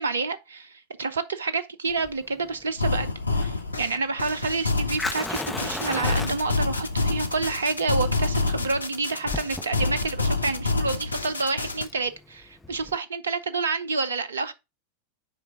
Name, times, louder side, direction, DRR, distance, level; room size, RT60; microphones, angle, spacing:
voice 1, 0.0-14.5, right 3 dB, 70° right, 0.6 m, -29 dB
Fire, 1.9-13.0, left 2 dB, 5° left, 0.7 m, -37 dB
sound 1, 2.8-11.9, left 3 dB, 80° left, 0.7 m, -27 dB
7.1 x 4.7 x 3.6 m
figure-of-eight pair, 90°, 0 cm